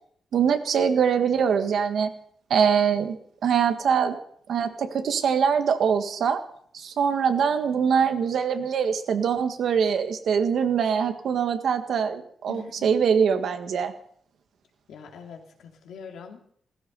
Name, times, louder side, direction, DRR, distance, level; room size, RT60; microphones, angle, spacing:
voice 1, 0.3-2.1 2.5-3.2 3.4-4.2 4.5-6.4 6.7-13.9, right 7 dB, 60° right, 7 dB, 1.7 m, -23 dB
voice 2, 12.5-13.0 14.9-16.5, left 6 dB, 80° left, 2 dB, 3.0 m, -43 dB
16.5 x 15.0 x 5.4 m, 0.63 s
wide cardioid pair, 170°, 0 cm